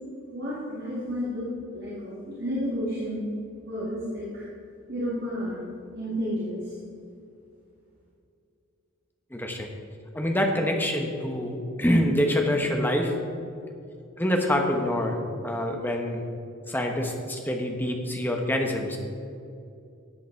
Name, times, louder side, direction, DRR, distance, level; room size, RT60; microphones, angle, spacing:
voice 1, 0.3-3.3 3.6-4.5 4.9-5.7 5.9-6.7, equal, 50° right, -7 dB, 2.2 m, -31 dB
voice 2, 9.3-9.7 10.1-13.1 14.2-15.2 15.4-16.2 16.7-19.0, left 1 dB, 10° left, 2 dB, 1.1 m, -26 dB
13.0 x 8.2 x 4.6 m, 2.6 s
head